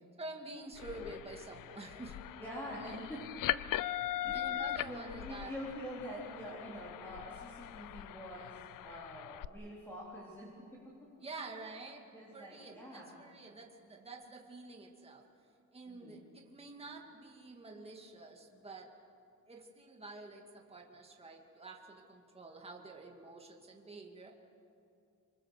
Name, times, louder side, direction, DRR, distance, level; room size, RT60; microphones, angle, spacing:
voice 1, 0.2-2.2 2.7-3.1 4.3-5.5 11.2-15.2 15.7-18.9 19.5-24.3, right 3 dB, 20° right, 1 dB, 2.2 m, -48 dB
sound 1, 0.7-9.5, left 13 dB, 75° left, 0.6 m, -40 dB
voice 2, 2.4-3.5 4.2-10.5 12.1-13.2 15.9-16.2, equal, 5° left, -6 dB, 4.0 m, -46 dB
26.0 x 24.5 x 6.7 m, 2.6 s
cardioid pair, 150°, 32 cm